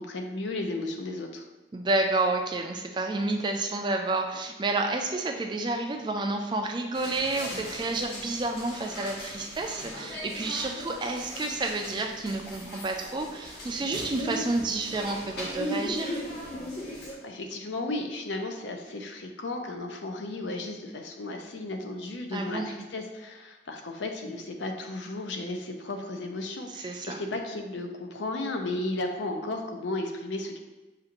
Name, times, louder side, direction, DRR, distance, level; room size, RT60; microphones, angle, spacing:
voice 1, 0.0-1.5 17.2-30.6, left 2 dB, 75° left, 4 dB, 0.6 m, -34 dB
voice 2, 1.7-16.2 22.3-22.7 26.7-27.2, right 2 dB, 25° right, 3 dB, 0.3 m, -30 dB
sound 1, 6.9-17.1, equal, 60° left, 1.2 m, -38 dB
6.6 x 2.5 x 2.9 m, 1.1 s
head